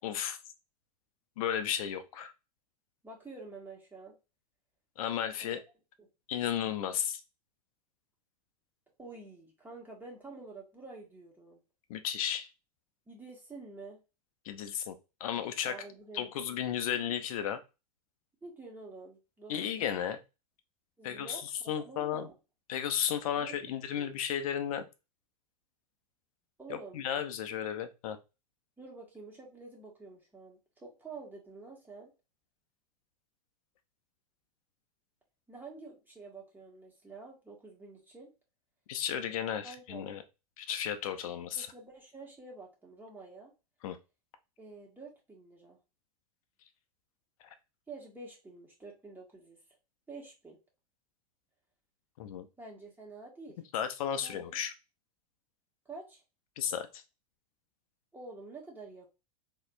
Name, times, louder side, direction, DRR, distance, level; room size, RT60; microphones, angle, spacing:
voice 1, 0.0-0.4 1.4-2.3 5.0-5.6 6.3-7.2 11.9-12.5 14.4-15.8 16.1-17.6 19.5-20.2 21.0-22.3 22.7-24.9 26.7-28.2 38.9-40.2 40.6-41.7 43.8-44.0 52.2-52.4 53.7-54.7 56.6-57.0, left 9 dB, 65° left, 10 dB, 0.8 m, -34 dB
voice 2, 3.0-4.2 5.4-5.6 6.0-6.1 9.0-11.6 13.1-14.0 15.7-16.7 18.4-20.0 21.0-22.4 23.3-24.1 26.6-27.0 28.8-32.1 35.5-38.3 39.6-40.2 41.6-43.5 44.6-45.8 47.9-49.6 50.1-50.6 52.6-53.6 54.2-54.6 55.9-56.2 58.1-59.1, right 3 dB, 10° right, -2 dB, 1.8 m, -49 dB
4.1 x 3.0 x 2.6 m, 0.28 s
hypercardioid pair, 95°, 19 cm